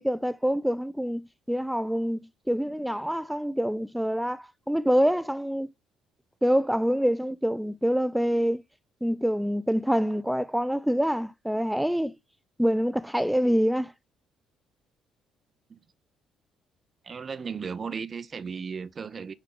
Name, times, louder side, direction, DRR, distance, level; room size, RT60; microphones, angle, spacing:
voice 1, 0.0-5.7 6.4-8.6 9.0-12.2 12.6-13.9, equal, ahead, 0.5 m, -26 dB
voice 2, 17.0-19.3, right 6 dB, 40° right, 0.7 m, -35 dB
6.5 x 4.6 x 3.8 m
figure-of-eight pair, 45°, 0 cm